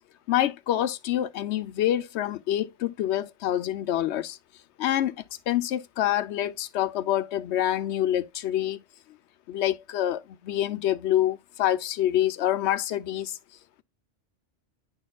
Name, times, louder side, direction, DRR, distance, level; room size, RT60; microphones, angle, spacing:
voice 1, 0.3-4.4 4.8-5.2 5.5-8.8 9.5-13.4, left 12 dB, 70° left, 0.9 m, -26 dB
10.5 x 4.3 x 2.3 m
omnidirectional pair, 1.2 m